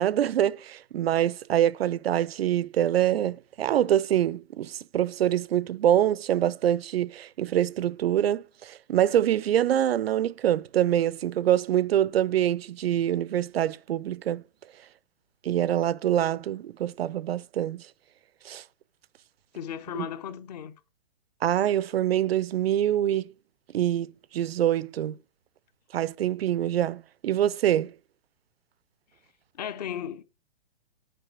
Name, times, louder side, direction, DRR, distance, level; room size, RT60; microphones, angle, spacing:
voice 1, 0.0-14.4 15.4-17.8 18.4-18.6 19.9-20.1 21.4-23.3 23.7-25.1 25.9-27.9, right 11 dB, 70° right, 0.5 m, -25 dB
voice 2, 19.5-20.7 29.6-30.2, left 9 dB, 40° left, 0.8 m, -35 dB
6.8 x 5.4 x 5.9 m
hypercardioid pair, 150°, 31 cm